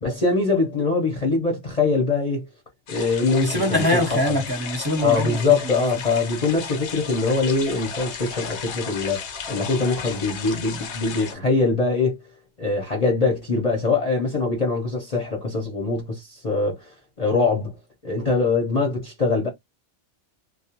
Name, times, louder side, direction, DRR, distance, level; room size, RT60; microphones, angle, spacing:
voice 1, 0.0-2.5 2.9-4.4 5.0-12.2 12.6-17.7 18.0-19.5, left 3 dB, 35° left, 0.8 m, -23 dB
sound 1, 2.9-11.3, left 6 dB, 70° left, 0.9 m, -34 dB
voice 2, 3.4-5.8, left 1 dB, 20° right, 0.9 m, -24 dB
2.3 x 2.2 x 2.8 m
omnidirectional pair, 1.2 m